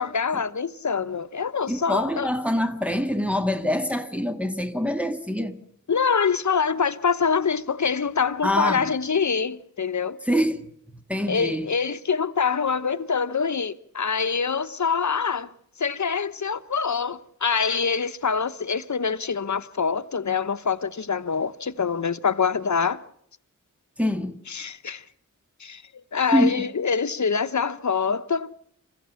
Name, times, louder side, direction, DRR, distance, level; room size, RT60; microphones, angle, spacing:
voice 1, 0.0-2.3 5.9-10.2 11.3-15.5 15.8-23.0 24.5-25.0 25.6-28.5, left 6 dB, 65° left, 1.0 m, -25 dB
voice 2, 1.7-5.6 8.4-8.9 10.2-10.7 10.9-11.7 24.0-24.4 26.3-26.7, equal, 5° right, 1.7 m, -25 dB
28.0 x 15.5 x 7.1 m
wide cardioid pair, 70°, 31 cm